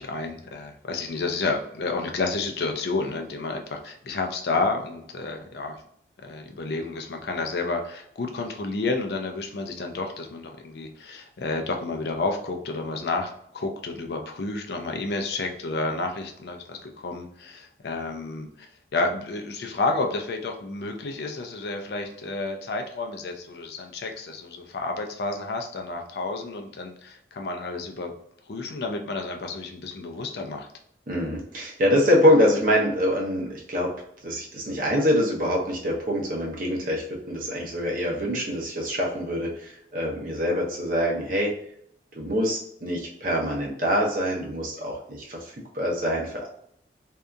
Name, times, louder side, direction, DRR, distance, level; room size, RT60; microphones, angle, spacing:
voice 1, 0.0-5.8 6.2-28.1 28.5-30.7, left 3 dB, 65° left, 4 dB, 0.4 m, -30 dB
voice 2, 31.1-33.9 34.2-41.5 42.1-46.5, equal, 50° right, -2 dB, 0.8 m, -25 dB
2.7 x 2.4 x 2.3 m, 0.68 s
head